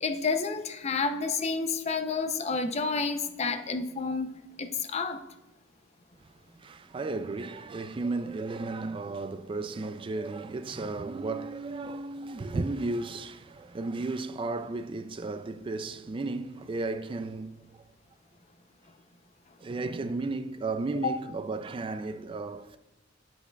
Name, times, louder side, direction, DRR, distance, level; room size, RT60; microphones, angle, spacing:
voice 1, 0.0-4.3 4.6-5.2 21.0-21.1, left 4 dB, 35° left, 0.5 m, -30 dB
voice 2, 6.2-17.9 19.6-22.8, right 3 dB, 25° right, 0.3 m, -34 dB
8.3 x 7.8 x 2.3 m
head